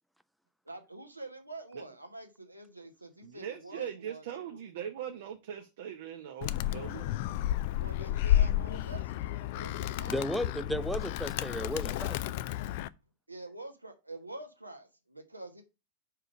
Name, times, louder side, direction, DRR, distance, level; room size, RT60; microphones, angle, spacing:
voice 1, 0.6-4.6 7.8-10.2 13.3-15.6, right 2 dB, 85° right, 1.3 m, -46 dB
voice 2, 3.2-7.1, right 9 dB, 55° right, 0.7 m, -41 dB
Animal, 6.4-12.9, left 12 dB, 50° left, 0.4 m, -31 dB
voice 3, 10.1-12.2, equal, ahead, 0.5 m, -34 dB
5.0 x 4.6 x 6.1 m
figure-of-eight pair, 90°, 0 cm